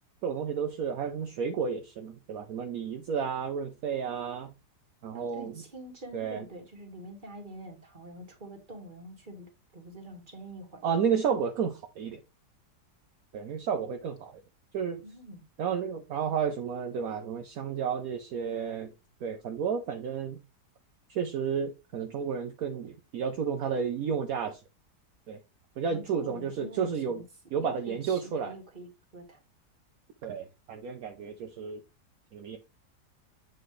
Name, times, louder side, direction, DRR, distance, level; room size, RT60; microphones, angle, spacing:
voice 1, 0.2-4.5 5.0-5.6 6.1-6.5 10.8-12.2 13.3-14.4 14.7-15.0 15.6-18.9 19.2-20.4 21.1-24.6 25.3-25.4 25.8-27.2 27.5-28.5 30.2-31.8 32.3-32.6, right 6 dB, 65° right, 1.2 m, -32 dB
voice 2, 5.1-10.8 15.0-15.4 25.9-27.2 27.5-29.4, right 1 dB, 30° right, 1.9 m, -46 dB
8.0 x 4.8 x 3.2 m
omnidirectional pair, 1.7 m